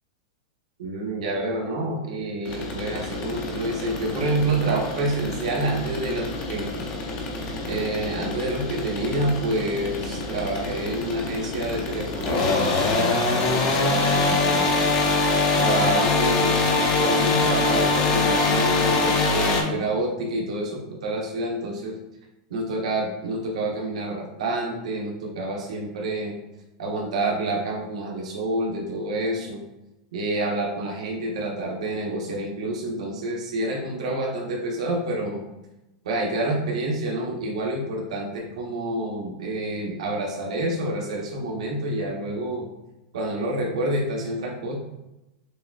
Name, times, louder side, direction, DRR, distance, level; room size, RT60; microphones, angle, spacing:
voice 1, 0.8-6.7 7.7-14.9 15.5-16.7 17.0-22.0 22.5-26.3 26.8-29.6 30.1-35.4 36.0-42.7 43.1-44.7, right 1 dB, 90° right, -1 dB, 1.0 m, -28 dB
sound 1, 2.5-19.6, left 3 dB, 30° left, 0.6 m, -24 dB
6.4 x 2.3 x 2.4 m, 0.95 s
supercardioid pair, 175°, 3 cm